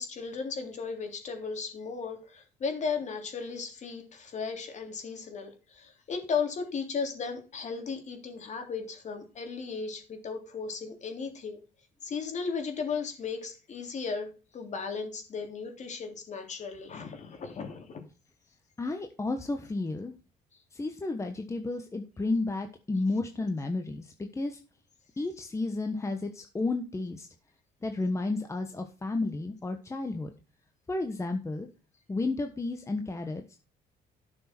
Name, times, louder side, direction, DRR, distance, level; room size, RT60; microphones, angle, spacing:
voice 1, 0.0-11.6 12.0-18.0, left 5 dB, 45° left, 4 dB, 3.4 m, -35 dB
voice 2, 18.8-20.1 20.7-24.6 25.2-27.3 27.8-30.3 30.9-31.7 32.1-33.6, left 2 dB, 15° left, 6 dB, 1.2 m, -32 dB
12.0 x 6.4 x 4.4 m, 0.34 s
cardioid pair, 110°, 17 cm